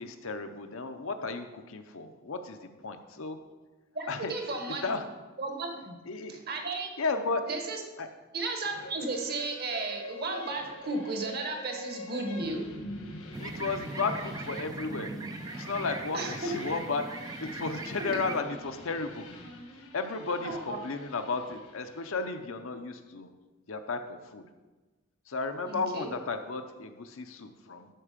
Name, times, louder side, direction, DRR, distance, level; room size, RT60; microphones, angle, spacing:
voice 1, 0.0-3.4 4.1-4.3 4.8-5.1 6.0-6.4 7.0-7.4 8.0-8.1 13.4-15.2 15.5-17.1 17.4-19.3 19.7-23.3 23.7-24.5 25.3-27.9, left 4 dB, 65° left, 7 dB, 0.7 m, -34 dB
voice 2, 3.9-4.9 5.4-6.0 6.3-6.9 7.5-7.8 8.3-12.7 16.1-16.5 18.0-18.2 20.4-20.8 25.7-26.1, right 3 dB, 45° right, 3 dB, 1.3 m, -34 dB
sound 1, 8.6-22.3, equal, 80° left, 1.7 m, -45 dB
sound 2, 13.3-18.4, right 3 dB, 15° right, 0.4 m, -40 dB
12.0 x 4.7 x 5.1 m, 1.2 s
head